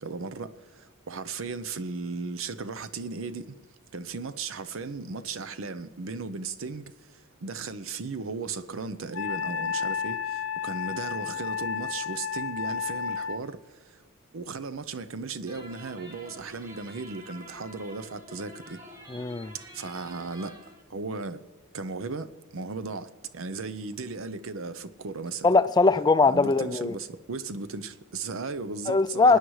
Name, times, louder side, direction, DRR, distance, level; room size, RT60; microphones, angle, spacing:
voice 1, 0.0-3.6 3.9-14.0 14.3-18.8 19.5-20.6 20.9-21.4 21.7-25.5 26.3-29.4, right 4 dB, 80° right, 0.7 m, -36 dB
Wind instrument woodwind instrument, 9.1-13.4, left 7 dB, 75° left, 0.5 m, -32 dB
sound 1, 15.5-20.8, equal, 15° right, 1.2 m, -48 dB
voice 2, 19.1-19.5 25.4-27.0 28.9-29.4, left 3 dB, 20° left, 0.3 m, -21 dB
28.0 x 9.5 x 3.2 m
head